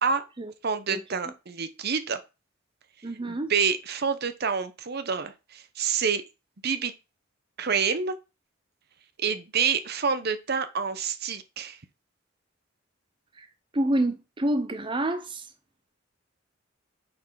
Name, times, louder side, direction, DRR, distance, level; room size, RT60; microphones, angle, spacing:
voice 1, 0.6-2.2 3.3-6.2 6.6-6.9 7.6-8.1 9.2-11.8, right 6 dB, 50° right, 0.9 m, -27 dB
voice 2, 3.0-3.5 13.4-13.5 13.7-15.5, right 1 dB, 25° right, 0.7 m, -27 dB
7.7 x 4.6 x 5.6 m
head